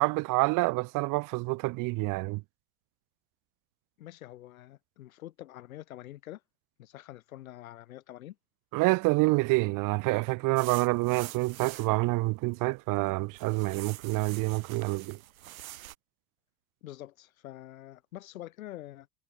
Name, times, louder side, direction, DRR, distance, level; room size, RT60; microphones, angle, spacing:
voice 1, 0.0-2.4 8.7-15.2, right 24 dB, 50° right, 0.9 m, -27 dB
voice 2, 4.0-6.4 6.8-8.4 16.8-19.1, left 14 dB, 80° left, 4.2 m, -46 dB
sound 1, 10.6-12.0 12.6-13.1 13.3-16.0, right 14 dB, 80° right, 3.4 m, -45 dB
hypercardioid pair, 95°, 41 cm